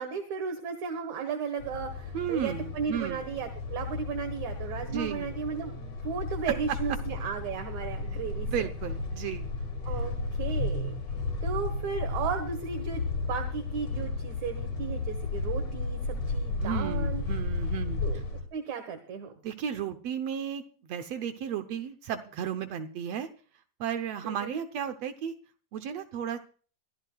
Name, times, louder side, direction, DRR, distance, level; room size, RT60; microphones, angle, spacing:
voice 1, 0.0-8.5 9.9-10.1 10.4-10.9 11.4-13.0 13.3-17.2 18.0-18.2 18.5-19.3 24.2-24.6, right 6 dB, 60° right, 5 dB, 2.6 m, -35 dB
sound 1, 1.6-18.4, left 3 dB, 45° left, 2.9 m, -33 dB
voice 2, 2.1-3.2 4.9-5.4 8.1-9.5 16.6-18.2 19.4-23.3 23.8-25.3 25.7-26.4, right 8 dB, 80° right, 7 dB, 1.4 m, -34 dB
24.0 x 14.0 x 2.4 m, 0.41 s
omnidirectional pair, 4.2 m